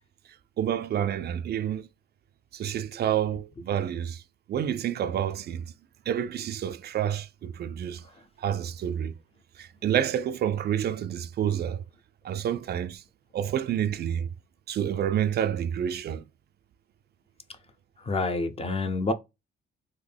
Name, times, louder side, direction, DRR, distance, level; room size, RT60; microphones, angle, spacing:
voice 1, 0.6-1.9 2.5-4.2 4.5-5.6 6.1-8.0 8.4-9.1 9.6-11.8 12.2-13.0 13.3-14.3 14.7-16.2, right 9 dB, 55° right, 0.4 m, -28 dB
voice 2, 18.1-19.1, left 3 dB, 30° left, 0.6 m, -27 dB
3.7 x 2.1 x 3.3 m
cardioid pair, 90°, 20 cm